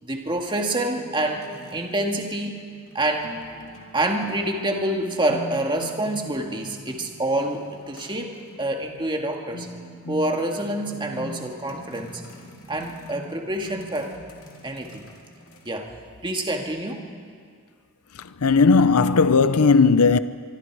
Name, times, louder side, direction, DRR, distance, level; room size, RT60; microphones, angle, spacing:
voice 1, 0.0-2.7 2.9-3.3 3.9-9.7 10.1-12.2 12.7-14.2 14.6-15.1 15.7-15.9 16.2-17.1, right 1 dB, 20° right, 2.0 m, -27 dB
sound 1, 0.9-15.7, equal, 65° left, 3.1 m, -42 dB
voice 2, 18.2-20.2, left 4 dB, 80° left, 0.7 m, -17 dB
24.5 x 24.5 x 4.8 m
head